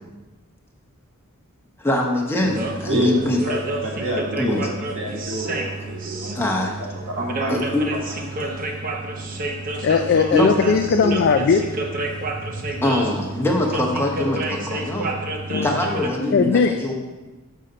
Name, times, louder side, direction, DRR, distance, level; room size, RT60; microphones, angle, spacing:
voice 1, 1.8-3.4 4.4-4.6 6.3-6.7 7.5-7.8 10.3-10.5 11.0-11.1 12.8-15.1 15.6-16.9, left 1 dB, 10° left, -1 dB, 0.9 m, -23 dB
sound 1, 2.4-16.1, right 2 dB, 40° right, 0.7 m, -29 dB
voice 2, 2.9-3.6 3.8-4.7 5.0-6.5 7.1-8.0 9.1-9.3, right 1 dB, 60° right, -3 dB, 1.5 m, -28 dB
voice 3, 9.7-11.6 15.5-15.7 16.3-16.7, left 5 dB, 50° left, 5 dB, 0.3 m, -18 dB
6.4 x 5.6 x 3.9 m, 1.1 s
head